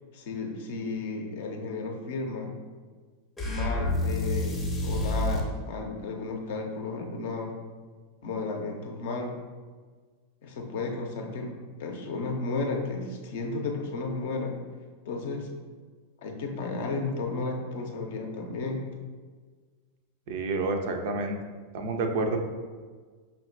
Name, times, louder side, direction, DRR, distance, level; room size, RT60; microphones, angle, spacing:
voice 1, 0.1-2.5 3.4-7.5 8.2-9.4 10.4-14.6 15.1-15.5 16.2-18.9, left 3 dB, 55° left, 2 dB, 0.6 m, -33 dB
sound 1, 3.4-5.5, left 1 dB, 10° left, 0.6 m, -28 dB
voice 2, 20.3-21.4 21.7-22.4, right 3 dB, 50° right, 4 dB, 0.4 m, -28 dB
5.5 x 2.3 x 2.5 m, 1.5 s
figure-of-eight pair, 90°, 0 cm